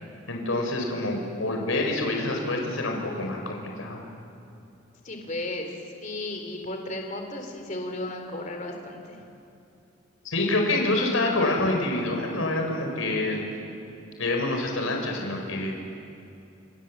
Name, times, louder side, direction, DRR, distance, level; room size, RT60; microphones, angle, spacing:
voice 1, 0.3-4.0 10.2-13.4 14.2-15.8, left 2 dB, 75° left, 2 dB, 4.8 m, -27 dB
voice 2, 5.0-9.2 11.6-11.7, left 2 dB, 35° left, 3 dB, 3.5 m, -34 dB
27.5 x 27.0 x 7.5 m, 2.7 s
head